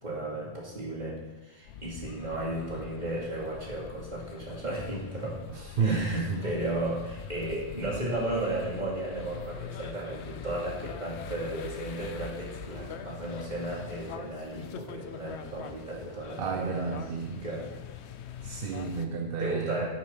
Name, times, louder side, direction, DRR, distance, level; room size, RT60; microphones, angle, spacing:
voice 1, 0.0-5.4 5.8-17.0 17.4-17.7 19.4-19.9, right 1 dB, 35° right, -4 dB, 2.6 m, -34 dB
sound 1, 1.7-19.1, left 8 dB, 70° left, 0.9 m, -44 dB
voice 2, 5.5-6.5 16.4-17.4 18.4-19.9, right 5 dB, 55° right, 3 dB, 0.8 m, -31 dB
8.2 x 6.9 x 5.6 m, 1.2 s
omnidirectional pair, 1.3 m